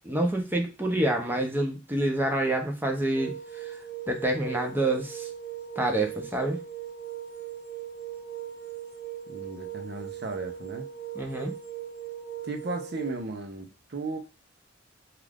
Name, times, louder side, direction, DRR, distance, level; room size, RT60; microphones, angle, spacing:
voice 1, 0.0-3.8 4.1-5.3 5.8-6.6 11.2-11.5, right 1 dB, 10° right, 3 dB, 0.5 m, -27 dB
sound 1, 3.1-13.2, right 10 dB, 15° left, 0.8 m, -39 dB
voice 2, 9.3-10.9 12.4-14.2, right 2 dB, 55° right, 5 dB, 0.6 m, -35 dB
2.4 x 2.3 x 3.3 m, 0.30 s
head